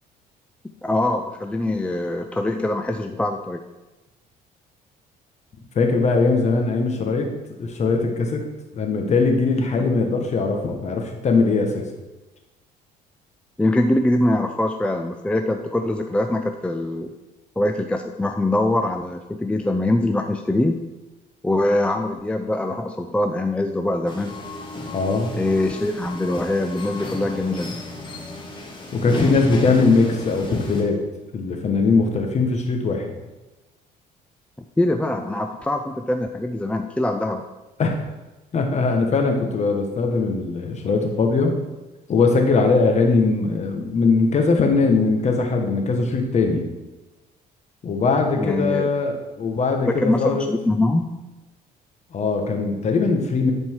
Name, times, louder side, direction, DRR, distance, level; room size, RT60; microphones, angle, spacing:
voice 1, 0.8-3.6 9.8-9.9 13.6-17.1 17.6-20.8 21.4-24.4 25.3-27.7 34.8-37.4 48.4-48.9 50.0-51.1, left 1 dB, 5° left, 5 dB, 0.5 m, -23 dB
voice 2, 5.7-7.3 7.6-8.4 8.7-11.8 24.9-25.3 28.9-31.0 31.3-33.1 37.8-38.0 38.5-41.6 42.1-46.6 47.8-50.4 52.1-53.5, left 4 dB, 40° left, 3 dB, 1.5 m, -20 dB
sound 1, 24.1-30.8, left 2 dB, 25° left, 1.9 m, -33 dB
11.0 x 4.5 x 4.7 m, 1.1 s
cardioid pair, 110°, 17 cm